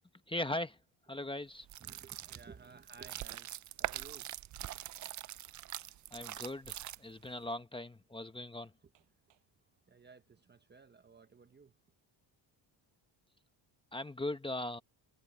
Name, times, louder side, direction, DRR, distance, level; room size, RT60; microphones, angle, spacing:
voice 1, 0.3-0.8 1.1-1.7 6.1-8.7 13.9-14.8, left 1 dB, 10° left, 0.9 m, -39 dB
sound 1, 1.6-7.3, right 13 dB, 40° right, 0.5 m, -43 dB
voice 2, 1.8-3.5 3.8-4.3 9.9-11.7, right 5 dB, 20° right, 0.9 m, -55 dB
Hammer, 5.5-6.4 7.3-7.4 8.0-8.1 8.9-9.5 10.1-10.6, right 12 dB, 65° right, 7.5 m, -73 dB
cardioid pair, 125°, 46 cm